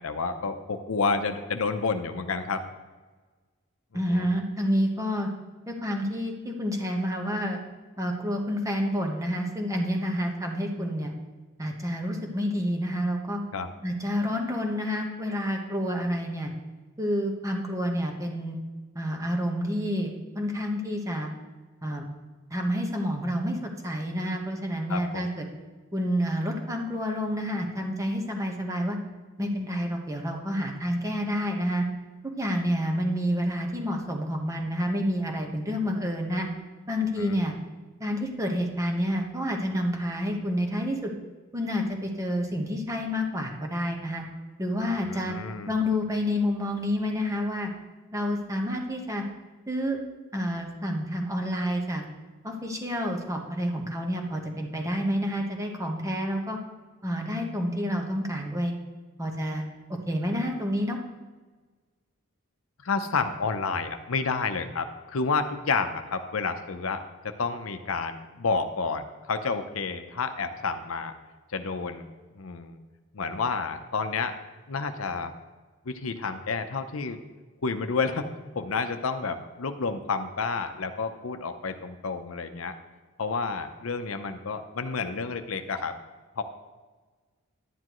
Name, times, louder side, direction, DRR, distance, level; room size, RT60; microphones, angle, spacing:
voice 1, 0.0-2.6 4.1-4.3 13.5-13.7 24.9-25.3 37.2-37.4 45.0-45.7 62.8-71.1 71.5-72.0 72.4-72.8 73.1-74.3 74.7-75.3 75.9-77.2 77.6-78.3 78.5-82.7 83.2-85.9 86.4-86.5, left 4 dB, 75° left, 8 dB, 0.7 m, -30 dB
voice 2, 3.9-5.3 5.7-7.6 8.0-11.1 11.6-13.4 13.8-16.5 17.0-18.6 18.9-21.3 21.8-22.1 22.5-25.4 25.9-29.0 29.4-31.8 32.4-36.5 36.9-37.5 38.0-41.1 41.5-44.2 44.6-45.3 45.7-47.7 48.1-49.2 49.7-50.0 50.3-52.0 52.4-56.6 57.0-58.8 59.2-59.7 60.1-61.0, equal, 15° right, 1 dB, 1.2 m, -29 dB
11.0 x 9.8 x 3.1 m, 1.3 s
head